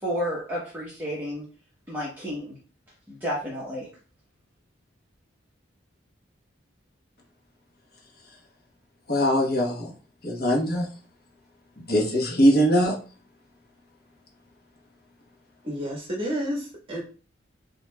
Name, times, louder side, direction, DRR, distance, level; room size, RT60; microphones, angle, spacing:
voice 1, 0.0-1.4 1.9-2.5 3.1-3.9, equal, 10° right, -7 dB, 1.0 m, -31 dB
voice 2, 9.1-9.9 10.2-10.9 11.8-12.9, equal, 50° left, 0 dB, 1.2 m, -21 dB
voice 3, 15.6-17.0, equal, 30° right, -2 dB, 1.4 m, -30 dB
7.2 x 2.8 x 2.3 m, 0.38 s
head